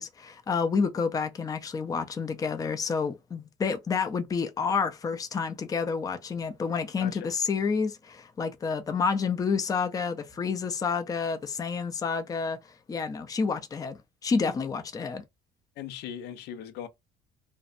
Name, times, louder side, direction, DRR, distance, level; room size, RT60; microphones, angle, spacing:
voice 1, 0.0-15.2, left 5 dB, 20° left, 0.4 m, -29 dB
voice 2, 7.0-7.3 15.8-16.9, left 9 dB, 80° left, 0.5 m, -39 dB
2.6 x 2.1 x 2.4 m
cardioid pair, 110°, 17 cm